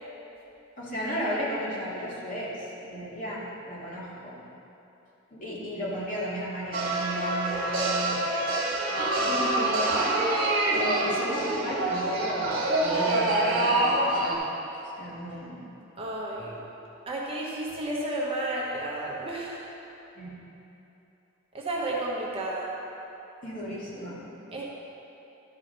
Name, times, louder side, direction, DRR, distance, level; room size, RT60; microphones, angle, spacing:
voice 1, 0.8-4.4 5.3-8.2 9.2-10.2 10.7-12.5 12.9-14.4 15.0-15.6 20.2-20.3 23.4-24.2, equal, 40° left, -7 dB, 2.0 m, -34 dB
sound 1, 6.7-14.3, right 2 dB, 45° right, 1.6 m, -26 dB
voice 2, 9.2-9.6 10.8-11.0 11.4-11.6 16.0-16.6 17.1-19.7 21.5-22.7 24.5-24.6, right 1 dB, 25° right, -4 dB, 1.0 m, -32 dB
12.0 x 4.9 x 5.4 m, 3.0 s
head